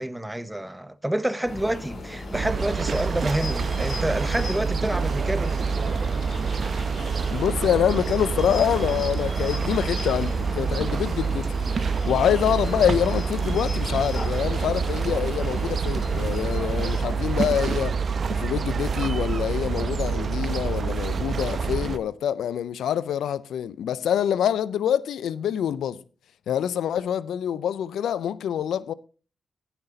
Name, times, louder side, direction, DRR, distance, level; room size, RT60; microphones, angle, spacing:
voice 1, 0.0-5.7, right 1 dB, 10° right, 0.9 m, -28 dB
sound 1, 1.5-17.0, left 2 dB, 55° left, 4.3 m, -38 dB
sound 2, 2.3-22.0, right 5 dB, 60° right, 0.8 m, -27 dB
sound 3, 7.1-14.7, left 1 dB, 40° left, 5.5 m, -47 dB
voice 2, 7.3-18.0 18.3-26.0 26.5-28.9, left 9 dB, 80° left, 0.4 m, -26 dB
16.5 x 5.9 x 3.8 m
supercardioid pair, 50°, 0 cm